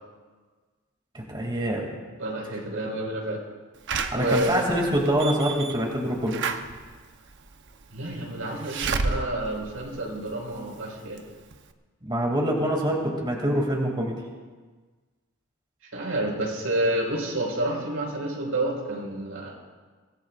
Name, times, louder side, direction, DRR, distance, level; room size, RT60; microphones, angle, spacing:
voice 1, 1.1-1.9 4.1-6.4 12.0-14.2, equal, 25° right, -1 dB, 2.6 m, -25 dB
voice 2, 2.2-3.4 4.1-4.6 7.9-11.2 15.9-19.5, right 1 dB, 90° right, -1 dB, 5.0 m, -29 dB
Slam / Alarm, 3.9-10.7 11.2-11.3 11.5-11.6, right 4 dB, 60° right, 0.9 m, -32 dB
24.5 x 18.5 x 2.5 m, 1.4 s
head